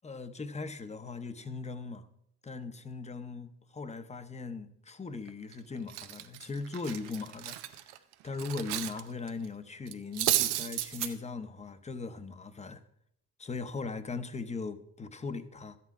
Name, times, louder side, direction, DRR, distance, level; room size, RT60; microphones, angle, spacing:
voice 1, 0.0-2.1 2.4-7.9 8.2-12.8 13.4-15.8, left 4 dB, 15° left, 0.8 m, -39 dB
Cutlery silverware, 5.3-5.5 5.9-9.0 9.3-9.5 9.9-10.9, right 14 dB, 85° right, 0.8 m, -32 dB
sound 1, 6.5-7.8 10.6-11.2, right 8 dB, 55° right, 1.3 m, -43 dB
13.0 x 8.5 x 4.7 m
cardioid pair, 120°, 39 cm